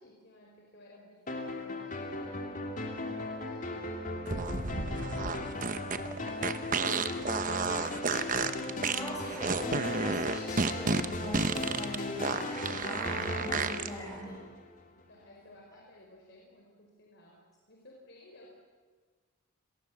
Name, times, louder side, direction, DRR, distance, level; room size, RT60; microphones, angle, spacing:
voice 1, 0.0-3.9 14.9-17.4 17.7-18.5, left 1 dB, 55° left, -2 dB, 4.7 m, -57 dB
sound 1, 1.3-14.8, left 2 dB, 35° left, 3.0 m, -37 dB
sound 2, 4.3-13.9, right 4 dB, 40° right, 0.9 m, -32 dB
voice 2, 8.9-14.4, left 1 dB, 15° left, -1 dB, 7.2 m, -41 dB
29.5 x 22.5 x 7.3 m, 1.4 s
head